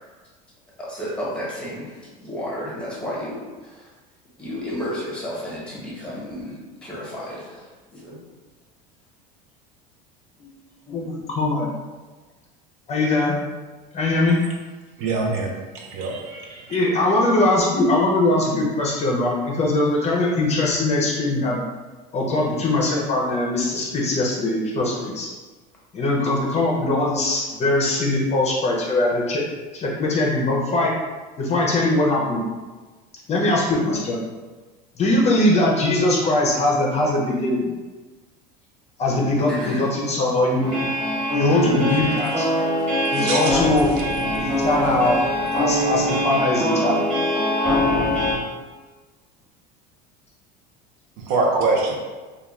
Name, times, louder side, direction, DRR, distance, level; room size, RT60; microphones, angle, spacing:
voice 1, 0.8-3.9 4.4-6.6 6.8-8.2 10.4-10.5 10.9-11.0 15.4-15.5 39.5-40.0, equal, 5° left, -6 dB, 1.1 m, -32 dB
voice 2, 10.9-11.7 12.9-13.4 13.9-14.4 16.7-21.6 22.1-25.3 25.9-29.4 29.7-30.9 31.4-32.4 33.3-34.2 35.0-37.7 39.0-40.9 41.3-42.5 43.1-43.9 44.4-45.2 45.5-47.1, left 2 dB, 30° left, -2 dB, 0.5 m, -21 dB
voice 3, 15.0-15.5 15.7-16.8 43.1-43.5 51.3-51.9, right 3 dB, 70° right, 0 dB, 0.6 m, -24 dB
sound 1, 40.6-48.3, equal, 40° right, 1.3 m, -23 dB
2.3 x 2.3 x 3.1 m, 1.3 s
supercardioid pair, 105°, 21 cm